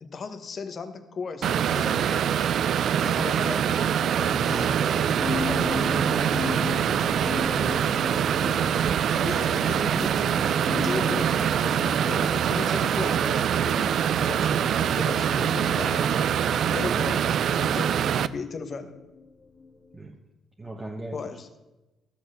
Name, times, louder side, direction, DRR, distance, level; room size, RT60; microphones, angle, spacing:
voice 1, 0.0-2.4 2.9-4.8 5.4-6.3 9.1-16.1 16.7-19.0 21.1-21.5, left 4 dB, 45° left, 9 dB, 1.2 m, -36 dB
sound 1, 1.4-18.3, right 9 dB, 65° right, 0.4 m, -24 dB
voice 2, 4.6-5.5 7.2-8.3 16.8-17.0 19.9-20.1 20.6-21.2, right 2 dB, 20° right, 0 dB, 1.2 m, -38 dB
sound 2, 5.2-20.1, left 4 dB, 25° left, 1.3 m, -38 dB
13.0 x 6.7 x 6.3 m, 1.1 s
cardioid pair, 90°, 0 cm